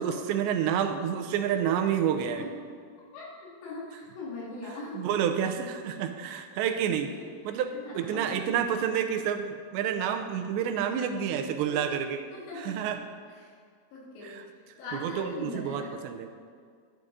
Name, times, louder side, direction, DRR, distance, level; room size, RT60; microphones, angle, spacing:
voice 1, 0.0-2.4 4.9-7.1 7.4-12.2 12.6-13.0 14.2-14.4 14.9-16.3, right 8 dB, 85° right, 6 dB, 2.9 m, -29 dB
voice 2, 1.8-2.5 3.1-5.1 6.5-6.7 7.5-8.4 10.8-10.9 11.7-12.0 12.3-12.8 13.3-13.5 13.9-14.4 14.8-15.9, left 2 dB, 80° left, -4 dB, 4.6 m, -41 dB
11.0 x 11.0 x 3.9 m, 2.1 s
omnidirectional pair, 5.1 m